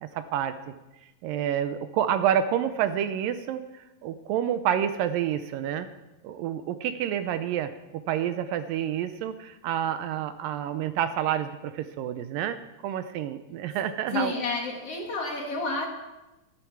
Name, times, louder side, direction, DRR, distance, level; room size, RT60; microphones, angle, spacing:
voice 1, 0.0-0.5 1.2-3.6 4.0-5.9 6.2-7.7 8.1-12.6 12.8-14.4, right 10 dB, 80° right, 10 dB, 2.2 m, -28 dB
voice 2, 14.1-15.9, left 3 dB, 50° left, 1 dB, 2.4 m, -30 dB
15.5 x 14.0 x 4.7 m, 1.0 s
omnidirectional pair, 4.2 m